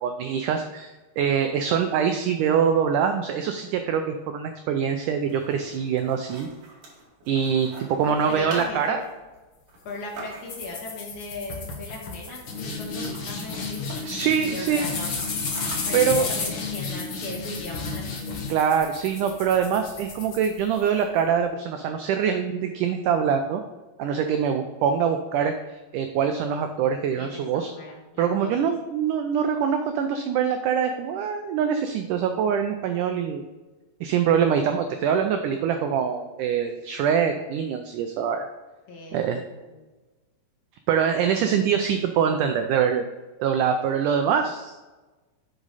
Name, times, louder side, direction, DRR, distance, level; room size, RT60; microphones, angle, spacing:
voice 1, 0.0-6.5 7.3-9.0 14.0-14.9 15.9-16.3 18.5-23.6 24.0-25.6 25.9-27.7 28.2-33.4 34.0-38.5 39.1-39.4 40.9-43.1 43.4-44.8, right 7 dB, 90° right, 6 dB, 1.8 m, -24 dB
sound 1, 5.1-10.8 11.8-12.3 12.5-12.6 12.9-14.0 14.4-17.0, right 2 dB, 65° right, 3.4 m, -44 dB
voice 2, 8.0-9.0 9.8-13.8 14.5-15.1 15.9-18.4 27.2-28.7 35.5-35.9 38.9-39.7, left 2 dB, 55° left, -2 dB, 3.0 m, -38 dB
sound 2, 10.5-21.0, left 4 dB, 75° left, 1.1 m, -32 dB
7.8 x 6.4 x 4.1 m, 1.2 s
omnidirectional pair, 4.3 m